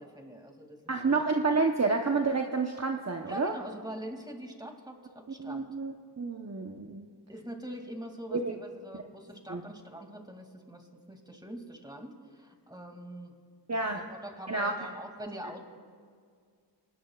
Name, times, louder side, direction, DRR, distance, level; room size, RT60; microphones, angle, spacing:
voice 1, 0.0-1.2 3.2-5.6 7.3-13.3 13.9-15.6, right 1 dB, 10° right, 3 dB, 2.5 m, -44 dB
voice 2, 0.9-3.5 5.4-7.1 8.3-8.5 8.9-9.0 9.5-9.6 13.7-14.0 14.5-14.7, right 3 dB, 40° right, 2 dB, 1.0 m, -29 dB
26.0 x 19.0 x 2.4 m, 2.1 s
wide cardioid pair, 45°, 43 cm